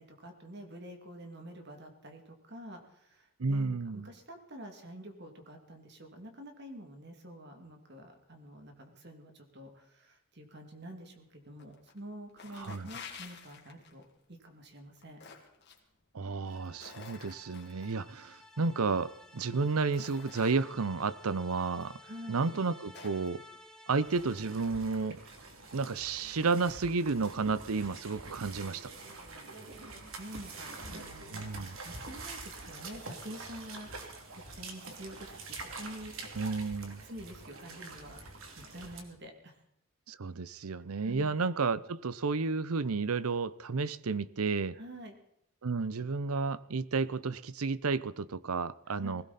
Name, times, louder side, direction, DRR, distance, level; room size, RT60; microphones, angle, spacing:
voice 1, 0.0-15.2 22.0-22.4 29.3-29.9 30.2-31.5 31.8-36.2 36.8-39.6 41.0-41.4 44.7-45.1 49.0-49.2, equal, 50° right, 2.5 m, -48 dB
voice 2, 3.4-4.1 12.6-12.9 16.1-22.0 22.3-23.4 23.9-25.2 25.7-28.9 31.3-31.8 36.4-37.0 40.1-44.8 45.6-49.2, right 4 dB, 90° right, 0.7 m, -32 dB
sound 1, 11.6-12.0 12.3-14.0 14.8-15.8 16.4-17.9 19.0-19.1 19.6-20.9 21.8-21.9 22.4-23.3, left 6 dB, 50° left, 2.6 m, -50 dB
sound 2, 16.5-24.9, left 2 dB, ahead, 1.5 m, -55 dB
sound 3, 24.0-39.0, right 3 dB, 70° right, 2.8 m, -46 dB
20.0 x 17.0 x 4.2 m
head